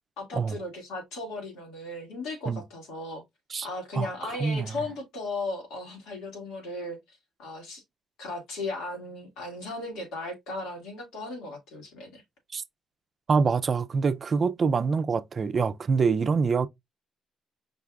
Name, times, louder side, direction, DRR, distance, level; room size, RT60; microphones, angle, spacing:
voice 1, 0.2-3.2 3.6-7.8 8.2-12.2, left 2 dB, 90° left, 2.0 m, -36 dB
voice 2, 3.9-4.7 12.5-12.6 13.3-16.7, right 5 dB, 45° right, 0.4 m, -25 dB
5.2 x 2.4 x 3.4 m
cardioid pair, 90°, 0 cm